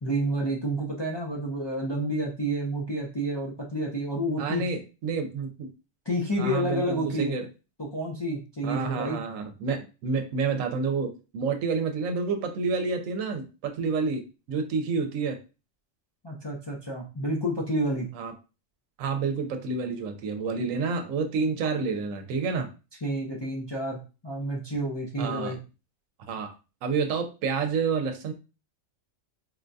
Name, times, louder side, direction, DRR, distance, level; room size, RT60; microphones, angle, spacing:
voice 1, 0.0-4.6 6.1-7.4 7.8-9.2 16.2-18.1 23.0-24.0 24.2-25.6, right 1 dB, 45° left, -2 dB, 0.3 m, -29 dB
voice 2, 4.4-5.7 6.4-7.5 8.6-15.4 18.2-18.3 19.0-22.7 25.2-25.6 26.3-26.5 26.8-28.3, right 5 dB, 80° right, 5 dB, 1.0 m, -29 dB
4.3 x 2.2 x 2.6 m, 0.32 s
omnidirectional pair, 1.4 m